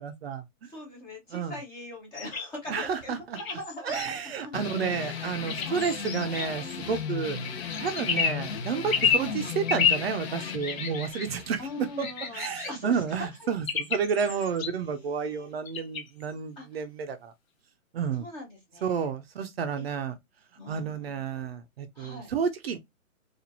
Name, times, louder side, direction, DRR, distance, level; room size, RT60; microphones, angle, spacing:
voice 1, 0.0-0.7 1.3-1.6 2.7-3.4 3.8-7.4 7.8-12.1 12.3-17.3 17.9-18.3 18.8-20.2 20.7-22.8, right 6 dB, 45° right, 0.6 m, -31 dB
voice 2, 0.7-3.9 4.4-5.3 5.6-5.9 7.7-8.0 9.1-9.4 11.6-13.0 14.1-14.5 14.7-15.5 16.6-16.7 18.2-19.1 19.8-19.9 20.6-21.2 21.9-22.3, left 2 dB, 10° left, 0.6 m, -42 dB
sound 1, 2.1-2.5 3.3-4.1 5.5-6.5 7.7-8.4 8.9-9.3 9.7-10.0 10.6-11.3 12.0-12.7 13.7-14.7 15.6-16.3, left 7 dB, 70° left, 1.0 m, -29 dB
sound 2, 4.5-13.6, left 6 dB, 45° left, 0.9 m, -36 dB
4.3 x 2.5 x 2.7 m
hypercardioid pair, 155°, 43 cm